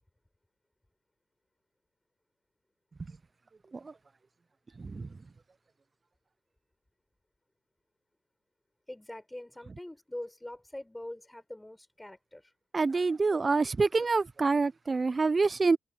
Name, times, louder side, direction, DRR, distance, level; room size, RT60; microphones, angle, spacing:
voice 1, 4.8-5.1 12.7-15.8, right 4 dB, 35° right, 0.3 m, -26 dB
voice 2, 8.9-12.5, left 1 dB, 10° left, 5.5 m, -43 dB
cardioid pair, 85°, 0 cm